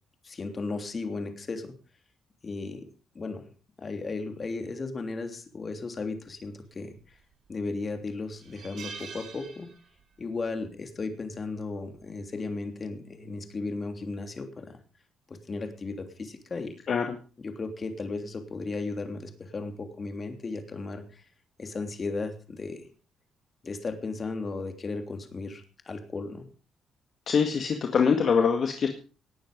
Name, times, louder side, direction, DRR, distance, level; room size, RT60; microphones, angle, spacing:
voice 1, 0.2-1.8 2.4-2.9 3.1-3.5 3.8-7.0 7.5-9.7 10.2-14.8 15.3-16.8 17.4-21.2 21.6-22.9 23.6-26.5, left 3 dB, 35° left, 7 dB, 3.2 m, -35 dB
sound 1, 7.0-7.5 7.9-8.0 8.4-10.2 10.5-10.7 12.0-12.3, right 5 dB, 60° right, 3.7 m, -45 dB
voice 2, 27.3-28.9, left 6 dB, 55° left, 4 dB, 1.9 m, -24 dB
19.0 x 9.3 x 5.3 m, 0.36 s
cardioid pair, 90°, 0 cm